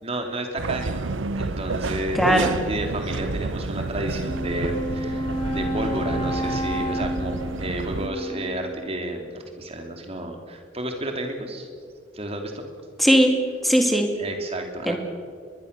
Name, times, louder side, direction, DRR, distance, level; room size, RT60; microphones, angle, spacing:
voice 1, 0.0-11.7 12.1-12.6 14.2-15.0, right 1 dB, 30° right, 3 dB, 3.1 m, -31 dB
sound 1, 0.6-8.1, right 3 dB, 85° right, 0.8 m, -30 dB
voice 2, 2.1-2.5 13.0-13.4 13.6-14.1 14.9-15.0, equal, ahead, 4 dB, 2.4 m, -18 dB
Wind instrument woodwind instrument, 4.1-9.1, equal, 25° left, 2.1 m, -30 dB
23.0 x 22.0 x 6.8 m, 2.1 s
head